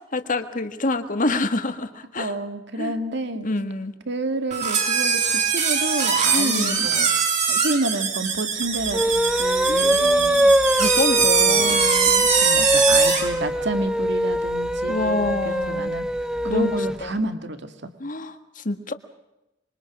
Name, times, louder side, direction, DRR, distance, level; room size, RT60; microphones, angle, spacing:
voice 1, 0.1-2.4 2.8-2.9 3.3-3.9 6.3-6.9 9.7-10.2 10.7-12.3 14.9-16.0 16.4-17.2 18.0-18.9, left 2 dB, 45° left, 8 dB, 1.8 m, -27 dB
voice 2, 2.2-3.5 4.1-10.5 11.2-11.8 12.4-16.1 16.4-17.9, right 2 dB, 65° right, 8 dB, 2.2 m, -30 dB
sound 1, 4.5-13.3, right 6 dB, 40° right, 5.1 m, -22 dB
sound 2, 8.8-17.0, equal, 5° right, 0.7 m, -22 dB
26.5 x 24.0 x 6.2 m, 0.94 s
head